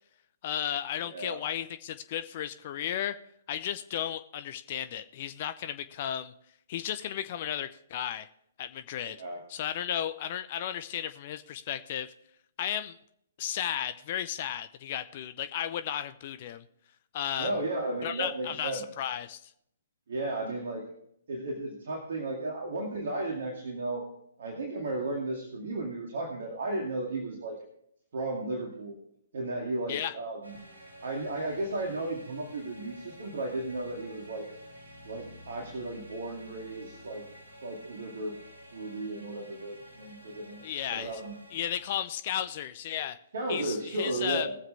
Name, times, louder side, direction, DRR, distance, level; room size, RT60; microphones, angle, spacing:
voice 1, 0.4-3.2 3.5-6.3 6.7-8.3 8.6-9.2 9.5-12.1 12.6-12.9 13.4-16.6 17.1-17.5 18.0-19.5 29.9-30.1 40.6-41.1 41.5-43.2 43.5-44.5, left 10 dB, 40° left, 10 dB, 0.6 m, -34 dB
voice 2, 1.0-1.4 9.2-9.4 17.4-18.8 20.1-20.8 21.3-24.0 24.4-27.6 28.1-29.0 29.3-30.6 31.0-34.4 35.0-37.2 37.6-38.3 38.7-41.4 43.3-44.6, right 2 dB, 55° right, 0 dB, 2.2 m, -34 dB
sound 1, 30.4-41.9, equal, 80° right, 4.2 m, -50 dB
20.0 x 7.5 x 3.4 m, 0.73 s
figure-of-eight pair, 125°, 0 cm